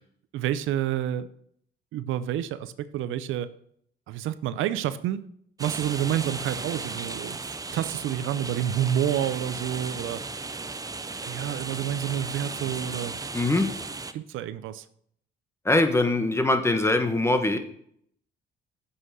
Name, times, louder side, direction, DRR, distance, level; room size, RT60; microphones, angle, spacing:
voice 1, 0.3-1.3 1.9-3.5 4.1-5.2 5.6-10.2 11.2-13.1 14.1-14.8, right 11 dB, 85° right, 14 dB, 0.6 m, -29 dB
sound 1, 5.6-14.1, right 3 dB, 20° right, 0.6 m, -36 dB
voice 2, 13.3-13.7 15.6-17.6, left 2 dB, 15° left, 7 dB, 1.2 m, -22 dB
8.2 x 5.7 x 6.4 m, 0.66 s
cardioid pair, 90°, 20 cm